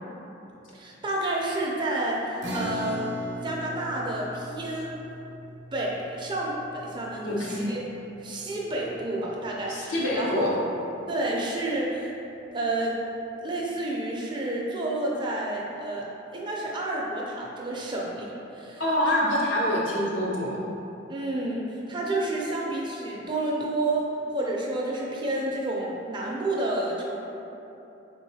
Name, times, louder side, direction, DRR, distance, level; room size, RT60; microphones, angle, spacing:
voice 1, 0.7-3.1 3.4-5.0 5.7-7.8 8.2-10.5 11.1-12.1 12.5-13.0 13.4-18.8 19.1-19.2 21.1-27.2, right 2 dB, 25° right, -3 dB, 0.4 m, -30 dB
sound 1, 2.4-9.1, equal, 65° right, 0.6 m, -39 dB
voice 2, 7.2-7.7 9.7-10.6 18.8-20.6, left 1 dB, 85° left, -4 dB, 0.7 m, -26 dB
3.7 x 3.6 x 2.7 m, 2.9 s
head